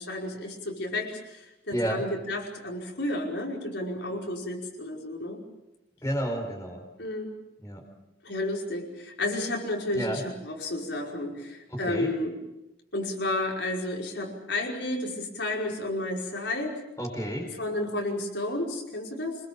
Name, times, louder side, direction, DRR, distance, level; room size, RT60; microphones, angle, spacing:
voice 1, 0.0-5.4 7.0-7.3 8.2-12.4 12.9-16.8 17.6-19.4, left 1 dB, 65° left, -1 dB, 5.3 m, -32 dB
voice 2, 1.7-2.0 6.0-6.8 7.6-7.8 9.9-10.2 11.7-12.1 17.0-17.5, equal, 15° left, 2 dB, 4.5 m, -31 dB
26.5 x 21.5 x 7.2 m, 0.93 s
head